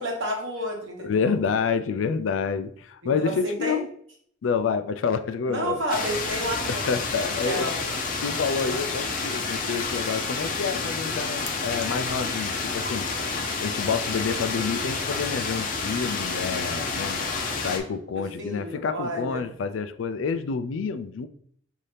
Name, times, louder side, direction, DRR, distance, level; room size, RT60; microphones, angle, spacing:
voice 1, 0.0-1.4 3.0-3.8 5.4-6.9 7.2-8.0 18.1-19.4, equal, 75° right, 0 dB, 1.2 m, -31 dB
voice 2, 1.0-3.9 4.4-5.8 6.7-7.7 8.2-13.1 13.6-17.2 17.6-21.3, left 5 dB, 80° left, 11 dB, 0.4 m, -28 dB
sound 1, 5.9-17.8, left 4 dB, 45° left, 0.7 m, -29 dB
5.5 x 2.7 x 3.3 m, 0.63 s
head